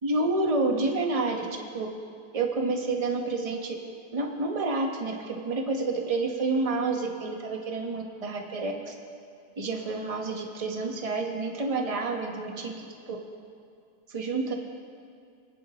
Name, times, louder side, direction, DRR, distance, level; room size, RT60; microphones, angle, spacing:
voice 1, 0.0-1.4 1.7-1.9 2.3-3.7 4.1-8.9 9.6-13.2 14.1-14.5, right 3 dB, 25° right, 2 dB, 0.9 m, -29 dB
23.5 x 10.0 x 3.0 m, 2.4 s
omnidirectional pair, 2.0 m